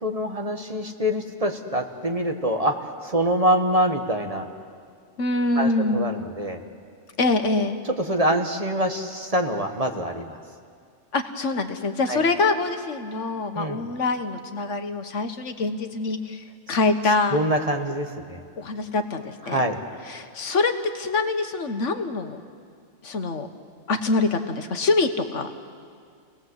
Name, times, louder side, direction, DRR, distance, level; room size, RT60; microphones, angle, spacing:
voice 1, 0.0-2.7 3.0-4.5 5.6-6.6 8.0-10.4 12.1-12.2 13.5-13.8 17.3-18.4 19.5-19.8, equal, 30° right, 4 dB, 1.6 m, -25 dB
voice 2, 5.2-6.1 7.2-7.8 11.1-17.4 18.6-19.7 20.1-22.4 23.0-23.5 23.9-25.5, left 3 dB, 75° left, 7 dB, 1.6 m, -25 dB
29.0 x 19.0 x 8.1 m, 2.2 s
omnidirectional pair, 1.3 m